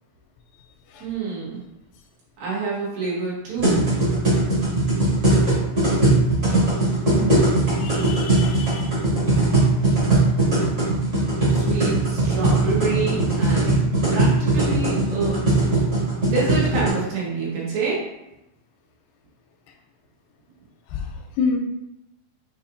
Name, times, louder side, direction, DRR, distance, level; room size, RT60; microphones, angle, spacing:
voice 1, 1.0-1.6 2.4-3.9 11.5-13.8 14.1-15.5 16.2-18.0, right 4 dB, 85° right, -6 dB, 3.1 m, -27 dB
sound 1, 3.6-16.9, right 2 dB, 50° right, 0.7 m, -20 dB
voice 2, 7.0-7.5 7.8-8.9 20.9-21.1 21.4-21.6, left 4 dB, 85° left, 3 dB, 2.3 m, -27 dB
6.2 x 2.8 x 2.5 m, 0.91 s
omnidirectional pair, 4.0 m